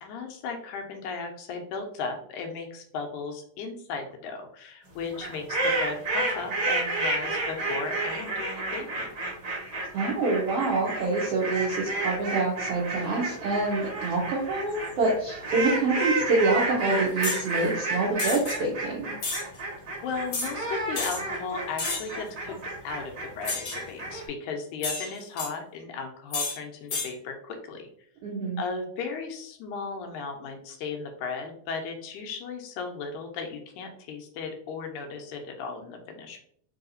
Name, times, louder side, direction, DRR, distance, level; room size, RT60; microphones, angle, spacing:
voice 1, 0.0-9.1 19.5-19.7 20.0-22.6 22.8-27.9 28.6-36.4, left 4 dB, 85° left, 4 dB, 2.1 m, -36 dB
sound 1, 5.1-24.2, right 2 dB, 40° right, 1.5 m, -30 dB
voice 2, 9.9-19.1 28.2-28.6, right 3 dB, 80° right, -4 dB, 1.3 m, -26 dB
sound 2, 17.2-17.4 18.2-18.6 19.2-19.4 20.3-20.5 20.9-21.2 21.8-22.1 23.4-23.8 24.8-25.5 26.3-26.6 26.9-27.1, left 4 dB, 65° left, 1.4 m, -31 dB
4.7 x 2.8 x 2.5 m, 0.62 s
omnidirectional pair, 3.5 m